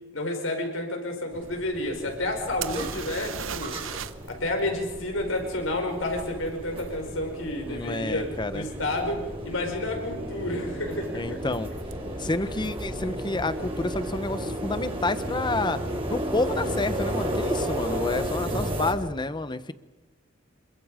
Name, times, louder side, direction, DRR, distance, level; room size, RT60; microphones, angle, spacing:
voice 1, 0.1-3.7 4.4-11.4, left 1 dB, 80° left, 3 dB, 5.6 m, -30 dB
sound 1, 1.3-18.9, equal, 30° right, 4.9 m, -33 dB
sound 2, 2.6-4.3 4.6-4.7 8.1-8.2 8.8-9.0 9.3-9.9 11.9-12.0 12.3-12.4, right 9 dB, 75° right, 0.8 m, -36 dB
voice 2, 7.7-8.7 11.1-11.7 12.2-15.8 16.1-19.7, left 2 dB, 25° left, 13 dB, 0.9 m, -29 dB
27.5 x 23.0 x 5.1 m, 1.2 s
head